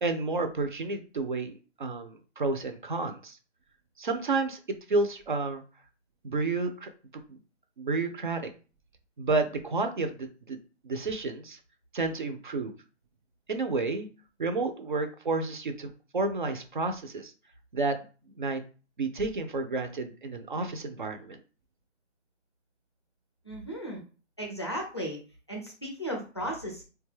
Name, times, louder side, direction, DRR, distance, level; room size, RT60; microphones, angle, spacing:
voice 1, 0.0-1.5 1.8-3.4 4.0-4.6 4.9-5.6 6.2-6.9 7.3-7.4 7.8-8.4 9.2-10.6 10.8-11.6 11.9-12.7 13.5-14.1 14.4-17.3 17.7-18.0 18.4-18.6 19.0-21.4, right 3 dB, 45° right, 7 dB, 0.4 m, -30 dB
voice 2, 23.4-24.0 24.4-25.2 25.5-26.8, equal, 25° left, 0 dB, 0.4 m, -35 dB
3.7 x 2.2 x 3.1 m, 0.36 s
hypercardioid pair, 170°, 35 cm